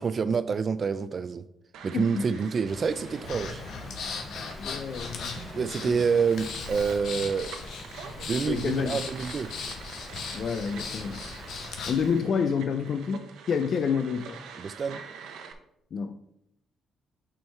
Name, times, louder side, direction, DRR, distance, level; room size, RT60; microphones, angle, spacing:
voice 1, 0.0-1.4 1.8-3.6 5.4-7.5 8.3-9.5 14.6-15.0, right 5 dB, 45° right, 12 dB, 0.3 m, -27 dB
sound 1, 1.7-15.5, right 6 dB, 85° right, 0.8 m, -46 dB
voice 2, 1.9-2.5 4.6-6.0 8.5-9.0 10.3-11.2 11.9-14.4 15.9-16.2, left 6 dB, 55° left, 8 dB, 0.4 m, -29 dB
sound 2, 2.7-11.7, left 2 dB, 30° left, 0.9 m, -46 dB
Breathing, 3.2-12.1, left 4 dB, 75° left, 1.1 m, -38 dB
6.2 x 4.5 x 4.6 m, 0.78 s
cardioid pair, 90°, 0 cm